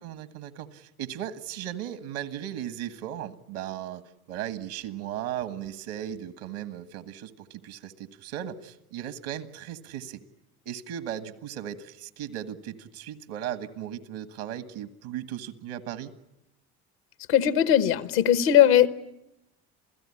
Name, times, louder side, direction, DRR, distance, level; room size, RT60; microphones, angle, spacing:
voice 1, 0.0-4.0 4.3-10.2 10.6-16.1, right 11 dB, 80° right, 11 dB, 1.8 m, -37 dB
voice 2, 17.3-18.9, left 10 dB, 90° left, 12 dB, 1.3 m, -19 dB
27.5 x 16.5 x 10.0 m, 0.87 s
supercardioid pair, 85°, 31 cm